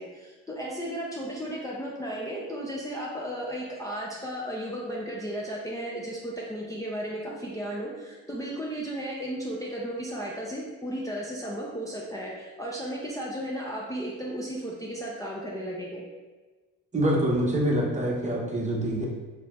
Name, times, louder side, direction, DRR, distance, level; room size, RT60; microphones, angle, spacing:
voice 1, 0.0-16.0, equal, 10° left, -4 dB, 0.5 m, -34 dB
voice 2, 16.9-19.1, right 1 dB, 25° right, -2 dB, 0.8 m, -25 dB
4.2 x 2.8 x 2.4 m, 1.2 s
cardioid pair, 90°, 30 cm